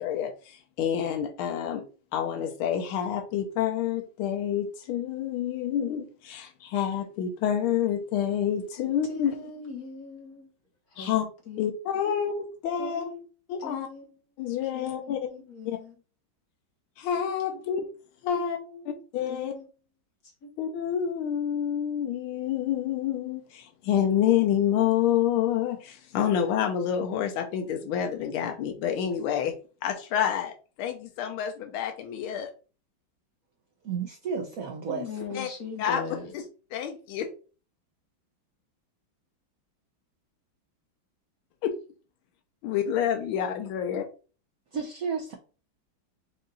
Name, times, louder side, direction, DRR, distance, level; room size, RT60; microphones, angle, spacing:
voice 1, 0.0-1.8 2.1-9.3 11.0-11.2 11.6-13.0 13.5-13.9 14.4-15.2 15.7-15.8 17.0-17.9 18.2-18.6 18.9-19.5 20.6-29.5 29.8-32.5 35.3-35.5 35.8-36.0 36.7-37.3 41.6-41.7 42.6-44.1, left 9 dB, 90° left, 1.5 m, -28 dB
voice 2, 9.1-10.5 10.9-11.7 12.0-12.3 12.8-13.2 13.6-14.2 14.6-16.0 18.3-19.0 19.3-19.7 20.2-20.5 34.9-36.3, left 4 dB, 50° left, 1.5 m, -40 dB
voice 3, 33.8-35.2 44.7-45.3, right 6 dB, 65° right, 0.9 m, -32 dB
5.3 x 2.5 x 4.0 m
omnidirectional pair, 2.2 m